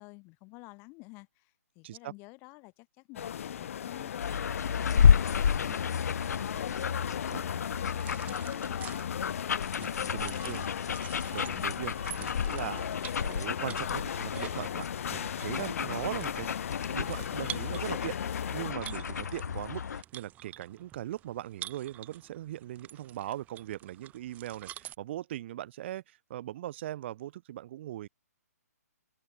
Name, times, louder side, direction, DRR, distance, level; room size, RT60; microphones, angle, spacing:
voice 1, 0.0-4.1 4.6-9.1, left 28 dB, 25° left, 4.0 m, -51 dB
sound 1, 3.2-18.7, left 9 dB, 55° left, 1.7 m, -38 dB
sound 2, 4.2-20.0, left 7 dB, 75° left, 0.7 m, -31 dB
sound 3, 8.0-25.0, right 13 dB, 15° right, 6.4 m, -49 dB
voice 2, 9.8-10.7 11.3-12.9 13.2-16.5 16.8-28.1, right 13 dB, 40° right, 2.4 m, -40 dB
hypercardioid pair, 150°, 9 cm